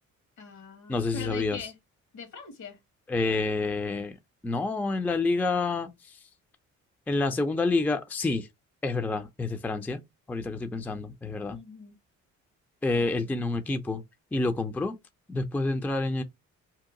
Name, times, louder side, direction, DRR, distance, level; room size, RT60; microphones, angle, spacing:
voice 1, 0.4-1.7 2.1-2.8 11.5-12.0, left 4 dB, 70° left, 1.4 m, -42 dB
voice 2, 0.9-1.6 3.1-4.2 4.4-6.2 7.1-8.5 8.8-10.0 10.3-11.6 12.8-14.0 14.3-15.0 15.3-16.2, left 3 dB, 5° left, 0.4 m, -28 dB
2.8 x 2.2 x 3.6 m
cardioid pair, 90°, 30 cm